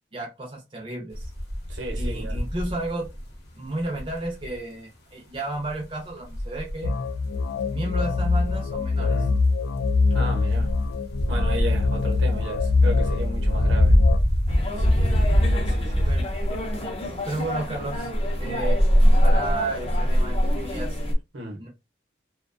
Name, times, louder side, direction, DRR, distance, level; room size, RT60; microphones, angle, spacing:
voice 1, 0.1-1.3 2.0-3.1 3.5-6.9 7.7-9.1 14.8-15.0 16.1-16.3 17.3-18.1 18.4-18.8 19.1-21.0 21.6-21.7, right 2 dB, 25° right, 0.5 m, -32 dB
sound 1, 1.1-3.4 3.8-4.6 5.7-5.8 6.3-6.9 8.0-8.8 10.5-16.6, equal, 55° left, 0.8 m, -24 dB
voice 2, 1.7-2.4 9.0-9.4 10.1-10.7 11.3-14.0 15.5-16.3 21.3-21.6, right 1 dB, 75° right, 0.9 m, -34 dB
sound 2, 6.8-14.2, left 3 dB, 90° left, 0.3 m, -23 dB
sound 3, 14.5-21.1, equal, 30° left, 0.5 m, -23 dB
2.4 x 2.2 x 2.5 m
head